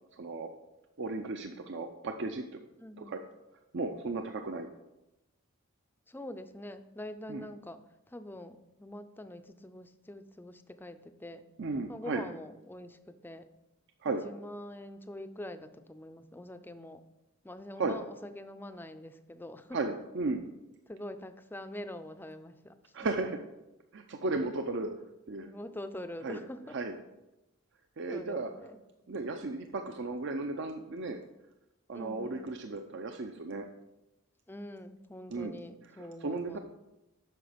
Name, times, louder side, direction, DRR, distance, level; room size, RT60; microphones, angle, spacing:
voice 1, 0.2-0.5 1.0-2.4 3.0-3.2 3.7-4.7 7.3-7.5 11.6-12.2 14.0-14.2 17.8-18.0 19.7-20.4 22.9-23.3 23.9-24.9 25.3-25.5 26.2-26.4 26.7-27.0 28.0-28.5 29.1-31.2 31.9-33.7 35.3-35.5 36.0-36.6, right 3 dB, 60° right, 6 dB, 0.6 m, -35 dB
voice 2, 2.8-3.2 6.1-11.4 11.9-13.5 14.2-17.0 17.4-19.8 20.9-22.9 25.3-26.8 28.1-28.8 31.9-32.4 34.5-36.6, left 1 dB, 10° left, 10 dB, 0.4 m, -45 dB
8.9 x 6.2 x 5.1 m, 0.95 s
head